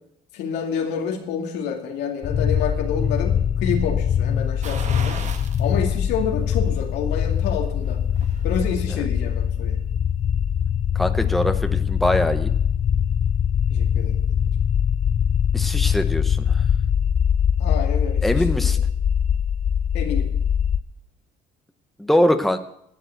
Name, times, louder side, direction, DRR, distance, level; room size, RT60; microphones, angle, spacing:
voice 1, 0.3-5.3 5.6-8.0 8.4-9.8 13.7-14.2 17.6-18.8 19.9-20.3, left 6 dB, 85° left, 3 dB, 2.2 m, -28 dB
sound 1, 2.2-20.8, left 8 dB, 40° left, 0.6 m, -22 dB
sound 2, 4.6-5.7 6.1-6.2 7.7-8.5 8.9-9.0, right 5 dB, 45° right, 1.6 m, -36 dB
voice 2, 10.9-12.5 15.5-16.6 18.2-18.8 22.0-22.6, left 1 dB, ahead, 8 dB, 0.8 m, -22 dB
12.0 x 7.9 x 7.9 m, 0.76 s
cardioid pair, 110°, 17 cm